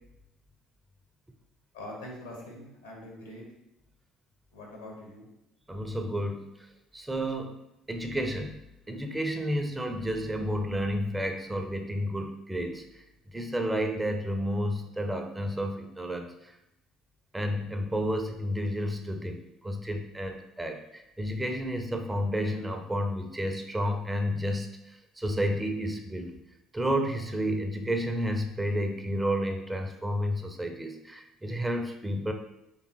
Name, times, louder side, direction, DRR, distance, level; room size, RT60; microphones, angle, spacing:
voice 1, 1.7-3.4 4.5-5.3, left 1 dB, 80° left, -1 dB, 1.2 m, -43 dB
voice 2, 5.7-6.5 6.9-7.6 7.9-8.6 8.9-13.0 13.3-16.3 17.3-24.7 25.2-26.3 26.7-32.3, equal, 10° right, 5 dB, 0.6 m, -31 dB
4.5 x 3.5 x 3.0 m, 0.87 s
figure-of-eight pair, 55°, 0 cm